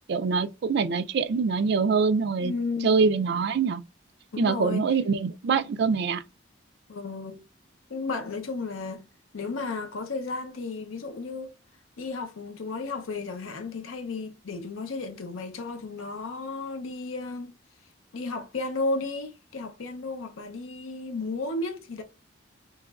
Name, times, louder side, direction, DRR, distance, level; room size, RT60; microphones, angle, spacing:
voice 1, 0.1-2.5 2.8-3.8 4.4-6.2, right 5 dB, 55° right, 0.4 m, -24 dB
voice 2, 2.4-2.9 4.3-5.0 6.9-7.4 7.9-9.1 9.3-11.5 12.0-17.6 18.1-22.0, left 3 dB, 90° left, 0.6 m, -33 dB
4.7 x 2.9 x 2.3 m
head